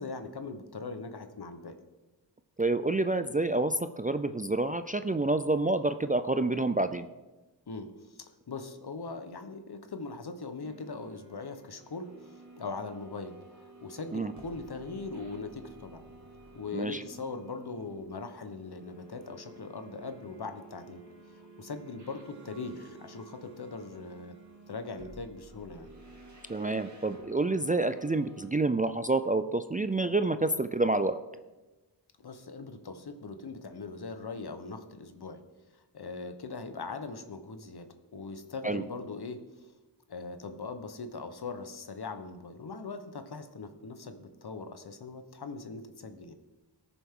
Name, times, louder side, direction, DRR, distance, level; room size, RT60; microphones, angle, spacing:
voice 1, 0.0-1.8 7.7-16.0 16.5-21.0 21.3-24.3 24.7-25.9 32.2-35.4 35.7-39.7 40.1-46.3, left 4 dB, 60° left, 8 dB, 1.0 m, -41 dB
voice 2, 2.6-7.1 14.1-14.3 16.7-17.0 26.5-31.2 38.6-38.8, right 2 dB, 20° right, 10 dB, 0.3 m, -28 dB
sound 1, 10.6-28.5, right 2 dB, 40° right, 2.3 m, -52 dB
18.5 x 7.0 x 3.7 m, 1.1 s
wide cardioid pair, 90°, 43 cm